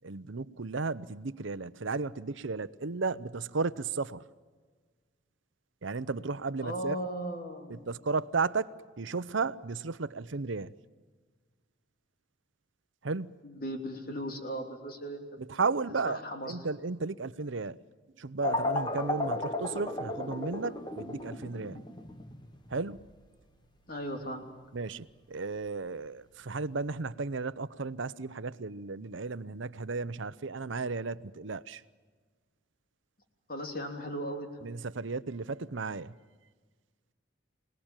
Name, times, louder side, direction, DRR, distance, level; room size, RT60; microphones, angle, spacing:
voice 1, 0.0-4.2 5.8-7.0 7.7-8.7 9.0-10.7 13.0-13.4 15.4-17.8 18.2-21.8 22.7-23.0 24.7-31.8 34.6-36.1, right 4 dB, 75° right, 0.8 m, -34 dB
voice 2, 6.6-7.9 13.4-15.2 16.1-16.6 23.9-24.5 33.5-34.6, equal, 45° left, 3.2 m, -37 dB
sound 1, 18.4-26.9, left 2 dB, 20° left, 1.3 m, -36 dB
26.5 x 18.5 x 9.0 m
head